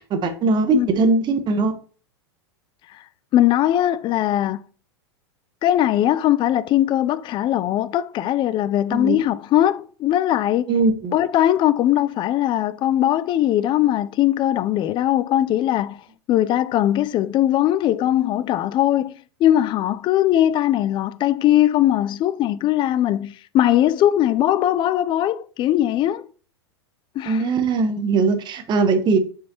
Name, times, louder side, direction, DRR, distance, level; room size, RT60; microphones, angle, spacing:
voice 1, 0.1-1.7 8.9-9.2 10.7-11.1 27.3-29.2, right 3 dB, 35° right, 1.2 m, -20 dB
voice 2, 3.3-4.6 5.6-10.7 11.1-16.0 16.3-26.2 27.2-27.4, left 12 dB, 35° left, 0.5 m, -20 dB
6.7 x 5.4 x 2.9 m
hypercardioid pair, 105°, 14 cm